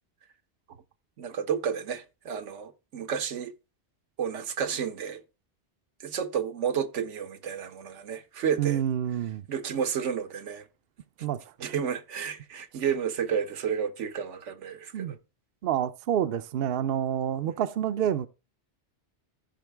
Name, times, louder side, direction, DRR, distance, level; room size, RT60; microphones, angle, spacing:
voice 1, 1.2-3.5 4.2-5.2 6.0-8.8 9.5-10.6 11.6-15.2, right 7 dB, 80° right, 1.2 m, -31 dB
voice 2, 8.6-9.4 11.2-11.8 14.9-15.2 15.6-18.3, right 10 dB, 60° right, 0.7 m, -28 dB
14.5 x 5.3 x 3.4 m
omnidirectional pair, 1.2 m